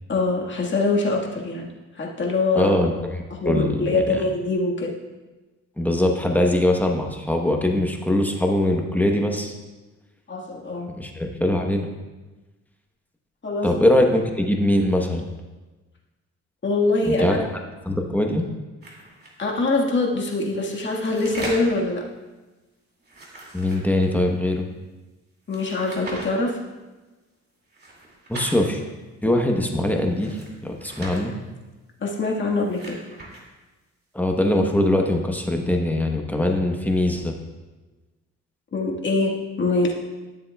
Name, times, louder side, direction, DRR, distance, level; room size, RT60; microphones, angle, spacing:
voice 1, 0.1-1.7 1.9-2.7 3.3-4.9 10.3-11.0 13.4-13.7 16.6-17.4 19.4-22.1 25.5-26.6 32.0-33.0 38.7-39.9, left 3 dB, 40° left, -1 dB, 1.6 m, -23 dB
voice 2, 2.5-4.2 5.8-9.5 11.0-11.9 13.6-15.3 17.0-17.4 17.9-18.5 23.5-24.7 28.3-28.8 29.2-30.4 30.6-31.3 34.1-37.4, left 1 dB, 5° left, 2 dB, 1.0 m, -22 dB
sound 1, 18.8-19.3 20.5-21.8 23.0-24.3 25.5-26.3 27.7-28.5 30.1-31.2 32.4-33.4, right 2 dB, 35° right, 2.3 m, -39 dB
12.5 x 7.4 x 2.3 m, 1.2 s
cardioid pair, 90°, 30 cm